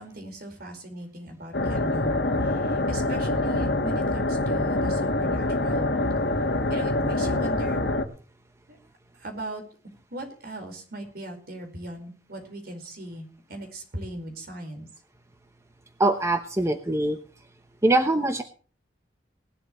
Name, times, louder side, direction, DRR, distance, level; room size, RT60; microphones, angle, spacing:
voice 1, 0.0-5.9 6.7-7.8 8.7-8.8 9.1-9.6 10.1-14.9, right 1 dB, 60° right, 4 dB, 4.8 m, -39 dB
sound 1, 1.5-8.0, left 2 dB, 65° left, 1.6 m, -25 dB
voice 2, 16.0-17.2 17.8-18.4, right 2 dB, 15° right, 6 dB, 0.9 m, -22 dB
19.0 x 11.5 x 3.2 m, 0.39 s
head